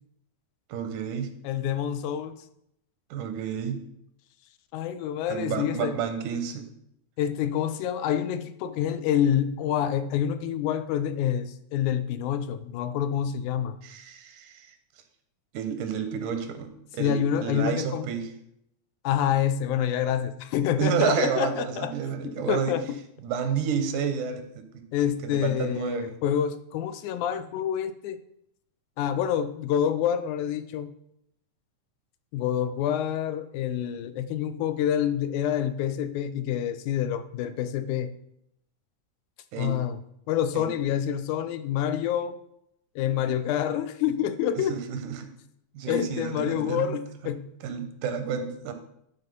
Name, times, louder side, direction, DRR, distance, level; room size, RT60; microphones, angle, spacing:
voice 1, 0.7-1.3 3.1-3.8 5.3-6.7 13.8-14.7 15.5-18.3 20.8-22.8 23.2-24.9 25.2-26.2 39.5-39.8 40.5-40.7 44.6-45.3 45.7-47.0 47.6-48.7, right 7 dB, 85° right, 7 dB, 2.4 m, -30 dB
voice 2, 1.4-2.3 4.7-5.9 7.2-13.8 17.0-18.1 19.0-21.9 22.2-22.9 24.9-28.2 29.0-30.9 32.3-38.1 39.6-40.0 40.3-42.4 43.0-44.8 45.9-47.5, left 9 dB, 85° left, 11 dB, 2.1 m, -27 dB
11.5 x 3.8 x 5.3 m, 0.76 s
omnidirectional pair, 3.4 m